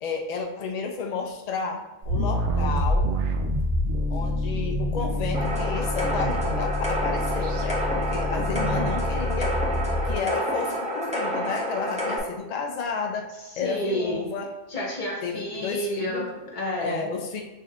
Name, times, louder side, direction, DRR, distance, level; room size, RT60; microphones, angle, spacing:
voice 1, 0.0-3.1 4.1-9.6 10.0-13.3 13.6-14.5 15.2-16.3 16.8-17.4, left 5 dB, 75° left, 2 dB, 0.3 m, -32 dB
sound 1, 2.0-10.2, left 1 dB, 70° right, 0.9 m, -26 dB
sound 2, 5.3-12.2, equal, 10° right, 0.5 m, -29 dB
voice 2, 13.5-14.3 14.7-17.1, equal, 40° left, -2 dB, 1.1 m, -30 dB
6.2 x 2.7 x 2.4 m, 1.1 s
omnidirectional pair, 1.3 m